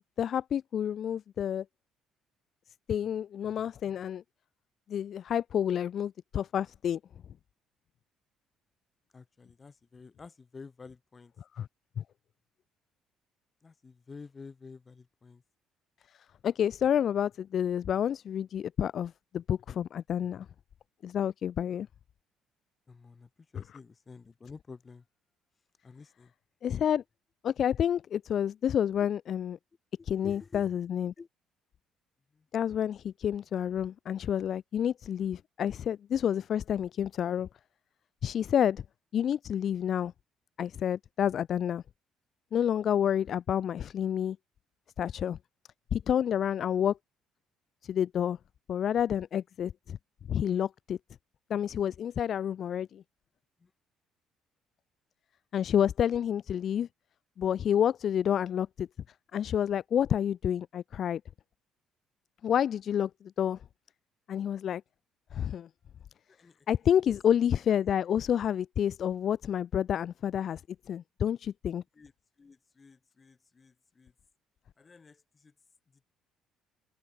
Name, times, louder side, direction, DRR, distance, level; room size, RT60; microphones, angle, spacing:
voice 1, 0.2-1.6 2.9-4.2 4.9-7.0 11.6-11.7 12.0-12.1 16.4-20.5 21.0-21.9 26.6-27.0 27.4-29.6 30.0-31.1 32.5-37.5 38.2-38.8 39.1-40.1 40.6-41.8 42.5-44.4 45.0-45.4 45.9-47.0 47.8-48.4 48.7-50.0 50.3-51.0 51.5-53.0 55.5-56.9 57.4-58.9 59.3-61.2 62.4-63.1 63.4-63.6 64.3-64.8 65.3-65.7 66.7-70.6 70.9-71.8, left 9 dB, 50° left, 0.4 m, -29 dB
voice 2, 9.1-11.3 13.6-15.4 22.9-25.0 25.8-26.3 30.2-30.8 31.2-31.3 53.6-53.7 66.3-66.5 72.0-72.1 72.4-74.1 74.8-75.5, left 4 dB, 25° left, 3.7 m, -50 dB
open air
cardioid pair, 120°, 0 cm